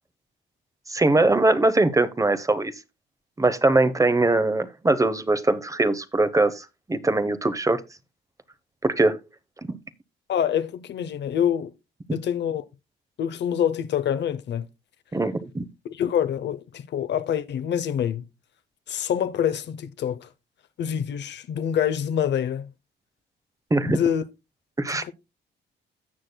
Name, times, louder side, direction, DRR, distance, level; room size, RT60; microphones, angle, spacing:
voice 1, 0.9-2.7 3.4-7.8 8.8-9.2 9.6-9.7 15.1-15.6 23.7-24.0 24.8-25.0, right 2 dB, 15° right, 0.8 m, -21 dB
voice 2, 10.3-11.7 12.1-12.7 13.2-14.7 15.8-18.3 18.9-20.3 20.8-22.7 23.8-24.2 24.9-25.1, left 9 dB, 60° left, 0.8 m, -26 dB
16.5 x 6.3 x 2.2 m
cardioid pair, 90°, 20 cm